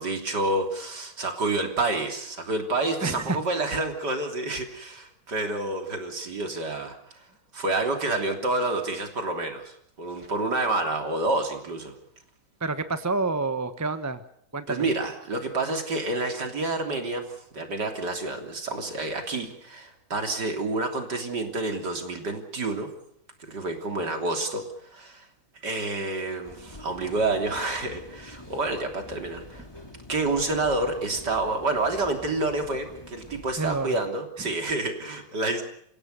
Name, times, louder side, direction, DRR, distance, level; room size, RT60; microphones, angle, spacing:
voice 1, 0.0-7.2 7.5-12.0 14.7-22.9 23.5-25.3 25.6-29.7 30.1-35.6, right 2 dB, 60° right, 4 dB, 3.8 m, -28 dB
voice 2, 3.0-3.4 12.6-14.2 14.5-14.8 33.6-34.0, right 3 dB, 10° right, 10 dB, 0.9 m, -28 dB
sound 1, 26.4-33.8, left 1 dB, 15° left, 2.5 m, -46 dB
29.5 x 16.5 x 6.8 m, 0.71 s
omnidirectional pair, 2.0 m